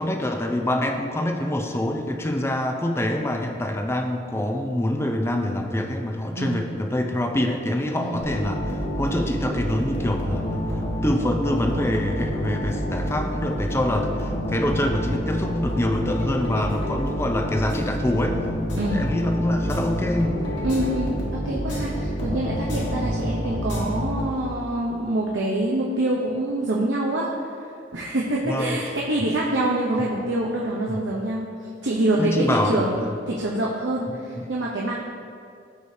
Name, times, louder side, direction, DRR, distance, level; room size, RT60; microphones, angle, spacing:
voice 1, 0.0-10.6 11.0-18.4 18.9-20.4 23.2-23.3 28.4-28.8 30.9-31.0 32.2-33.1, left 1 dB, 15° left, 3 dB, 0.5 m, -25 dB
voice 2, 6.4-6.7 8.0-8.3 18.8-19.1 20.6-27.3 27.9-31.5 31.8-33.0 33.3-34.9, right 1 dB, 85° right, -4 dB, 0.8 m, -25 dB
sound 1, 8.2-24.6, equal, 85° left, 1.7 m, -28 dB
14.0 x 4.9 x 2.7 m, 2.3 s
head